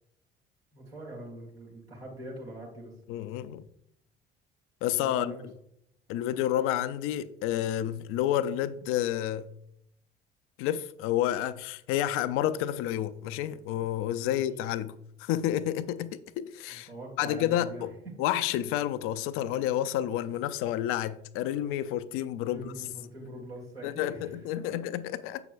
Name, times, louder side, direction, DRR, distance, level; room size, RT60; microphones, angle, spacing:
voice 1, 0.7-2.9 4.9-5.5 14.2-14.4 16.7-18.1 22.5-24.8, right 1 dB, 85° right, 1.8 m, -43 dB
voice 2, 3.1-3.6 4.8-5.3 6.1-9.5 10.6-14.9 15.2-16.9 17.2-17.9 18.2-22.7 23.8-25.4, left 12 dB, 45° left, 0.4 m, -30 dB
7.4 x 5.7 x 2.5 m
figure-of-eight pair, 55°, 29 cm